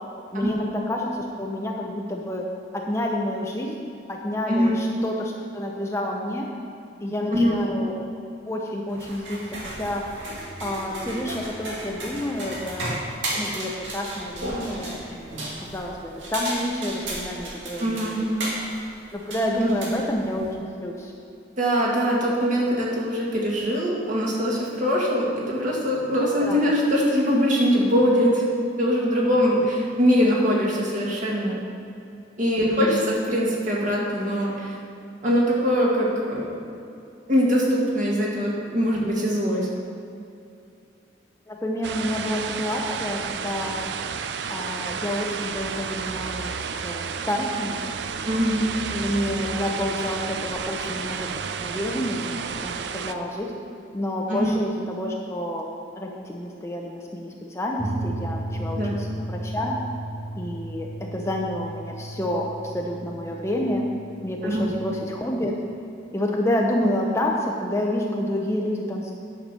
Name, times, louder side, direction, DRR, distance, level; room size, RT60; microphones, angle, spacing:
voice 1, 0.3-2.4 2.7-6.5 7.0-7.9 8.5-10.0 10.6-13.0 13.4-15.4 15.7-18.2 19.1-21.1 26.4-26.6 32.6-33.0 41.5-43.8 44.5-46.5 46.8-47.8 48.9-53.5 53.9-55.6 56.0-59.7 60.4-63.8 64.2-65.6 66.1-69.1, left 1 dB, 15° left, 0 dB, 0.7 m, -29 dB
voice 2, 4.5-4.8 7.3-7.6 17.8-18.2 19.6-19.7 21.6-28.4 28.8-31.6 32.4-34.7 35.2-36.5 37.3-39.7 48.3-48.6 54.3-54.5 58.8-58.9 64.4-64.7, equal, 45° right, -4 dB, 2.1 m, -22 dB
sound 1, 8.9-20.5, right 1 dB, 90° right, 2.2 m, -34 dB
sound 2, 41.8-53.1, right 6 dB, 65° right, 0.4 m, -31 dB
sound 3, 57.8-64.7, right 1 dB, 20° right, 0.7 m, -34 dB
10.0 x 5.9 x 6.7 m, 2.6 s
head